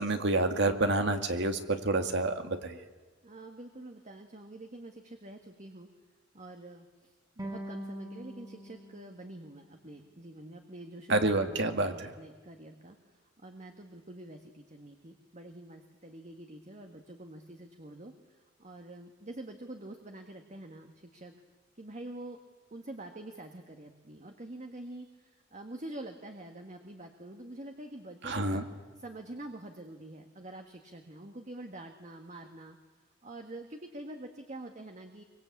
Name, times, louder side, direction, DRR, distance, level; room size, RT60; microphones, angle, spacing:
voice 1, 0.0-2.8 11.1-12.1 28.2-28.7, right 2 dB, 65° right, 7 dB, 2.2 m, -28 dB
voice 2, 3.2-5.9 6.3-13.0 13.4-18.1 18.6-21.3 21.8-22.4 22.7-28.6 29.0-32.8 33.2-35.2, right 1 dB, 40° right, 5 dB, 1.7 m, -46 dB
sound 1, 7.4-10.5, right 1 dB, 20° right, 2.4 m, -45 dB
24.5 x 24.5 x 8.5 m, 1.3 s
head